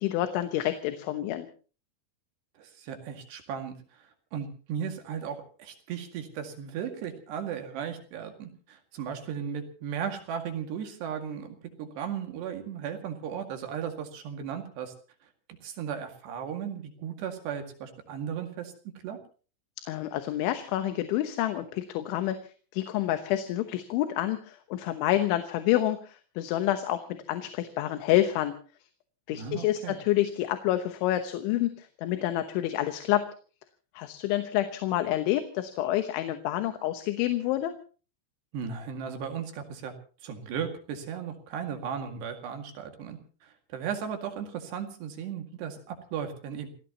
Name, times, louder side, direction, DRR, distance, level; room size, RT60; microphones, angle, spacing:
voice 1, 0.0-1.5 19.9-22.4 22.7-28.5 29.3-33.3 34.0-37.7, left 13 dB, 85° left, 9 dB, 3.5 m, -28 dB
voice 2, 2.6-14.9 15.2-15.3 15.6-19.2 29.3-30.0 38.5-39.9 40.2-46.7, right 7 dB, 65° right, 5 dB, 4.0 m, -36 dB
29.0 x 16.5 x 2.9 m, 0.38 s
omnidirectional pair, 5.4 m